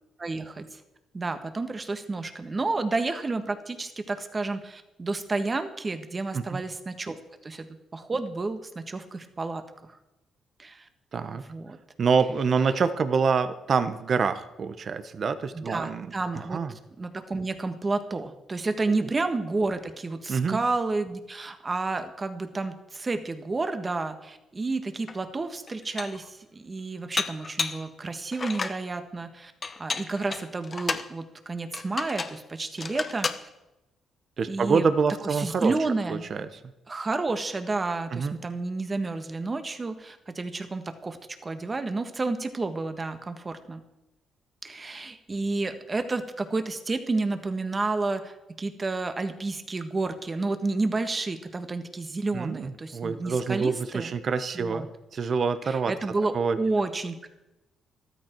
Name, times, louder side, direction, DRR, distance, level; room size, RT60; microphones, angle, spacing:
voice 1, 0.2-0.8 1.1-7.2 7.4-7.7 7.9-10.0 10.6-10.9 11.4-11.8 15.5-16.6 17.0-29.5 29.8-33.5 34.5-34.9 35.2-36.2 36.9-43.8 44.6-54.1 54.5-54.9 55.6-57.3, right 3 dB, 30° right, 8 dB, 1.5 m, -30 dB
voice 2, 11.1-11.4 12.0-16.7 19.0-19.1 20.3-20.6 34.4-35.7 36.1-36.5 38.1-38.4 52.3-54.9 55.1-55.9 56.3-56.6, right 5 dB, 50° right, 11 dB, 1.0 m, -26 dB
Dishes pots and pans, 25.1-25.2 25.7-26.3 27.2-27.9 28.3-28.8 29.6-31.1 31.7-32.4 32.8-33.4, left 4 dB, 35° left, 0.9 m, -32 dB
14.0 x 13.0 x 4.6 m, 0.95 s
cardioid pair, 90°, 0 cm